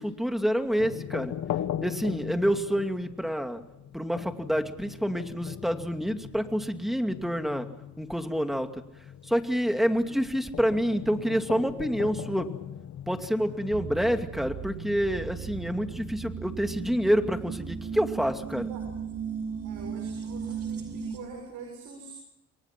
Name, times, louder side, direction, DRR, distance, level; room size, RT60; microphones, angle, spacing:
voice 1, 0.0-1.3 1.8-3.6 3.9-7.7 8.0-8.7 9.3-12.5 13.1-18.7, equal, ahead, 6 dB, 2.5 m, -27 dB
sound 1, 0.8-13.7, left 10 dB, 70° left, 1.8 m, -39 dB
sound 2, 13.7-21.2, right 6 dB, 50° right, 7.3 m, -36 dB
voice 2, 19.6-22.1, right 4 dB, 85° right, 2 dB, 6.9 m, -44 dB
29.0 x 23.0 x 5.9 m, 0.82 s
cardioid pair, 90°, 30 cm